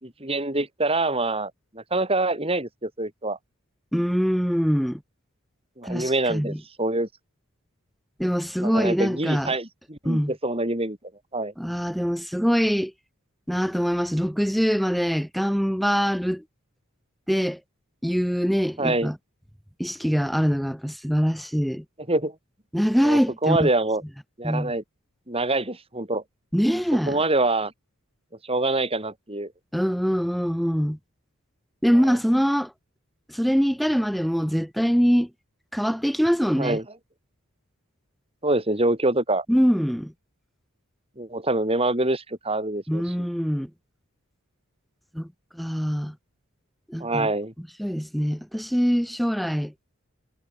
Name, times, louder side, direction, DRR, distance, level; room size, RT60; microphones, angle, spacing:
voice 1, 0.0-3.4 5.8-7.1 8.6-11.0 11.3-11.5 18.8-19.1 22.1-22.3 23.0-24.0 24.4-24.8 25.3-26.2 27.1-27.7 28.4-29.5 32.0-32.2 36.6-36.8 38.4-39.4 41.2-43.3 47.0-47.5, right 2 dB, 25° right, 5.0 m, -25 dB
voice 2, 3.9-5.0 5.8-6.6 8.2-9.5 10.0-10.3 11.6-12.9 13.5-16.4 17.3-17.6 18.0-19.2 19.8-21.8 22.7-23.7 24.4-24.7 26.5-27.2 29.7-31.0 31.8-32.7 33.3-35.3 35.7-36.8 39.5-40.1 42.9-43.7 45.1-45.3 45.5-46.1 46.9-47.3 47.8-49.7, equal, ahead, 3.3 m, -23 dB
head